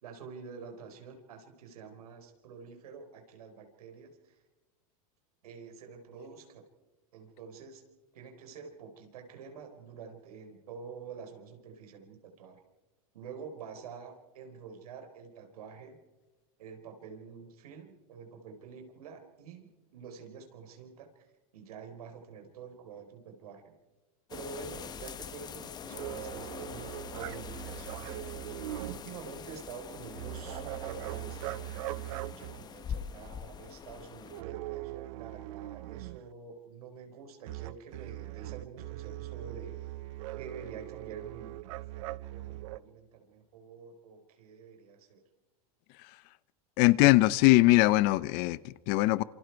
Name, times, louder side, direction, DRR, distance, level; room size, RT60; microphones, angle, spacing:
voice 1, 0.0-4.4 5.4-6.6 7.1-7.8 8.1-12.6 13.1-16.0 16.6-21.3 21.5-23.7 24.3-28.4 28.8-39.9 40.4-45.2, right 6 dB, 90° right, 4 dB, 4.4 m, -48 dB
sound 1, 24.3-34.4, left 8 dB, 20° left, 0.9 m, -44 dB
sound 2, 25.9-29.0 30.1-32.7 34.3-36.2 37.5-42.8, right 17 dB, 65° right, 0.7 m, -40 dB
voice 2, 46.8-49.2, left 19 dB, 50° left, 19 dB, 0.8 m, -22 dB
27.5 x 26.0 x 4.7 m, 1.2 s
supercardioid pair, 140°, 19 cm